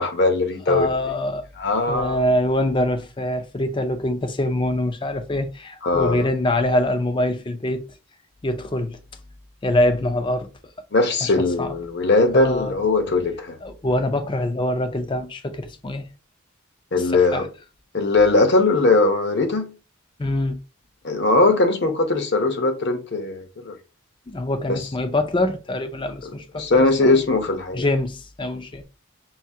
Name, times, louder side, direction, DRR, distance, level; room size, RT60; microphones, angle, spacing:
voice 1, 0.0-0.9 1.6-2.2 5.8-6.3 10.9-13.6 16.9-17.5 17.9-19.7 21.0-23.8 24.7-24.9 26.2-27.9, left 2 dB, 55° left, 0.7 m, -20 dB
voice 2, 0.7-1.5 1.9-7.8 8.4-9.0 9.6-10.5 11.2-11.3 11.6-11.8 12.3-12.8 13.6-16.1 17.0-17.5 20.2-20.6 24.3-27.2 27.7-28.8, left 1 dB, 25° left, 0.4 m, -24 dB
5.6 x 2.7 x 2.7 m
head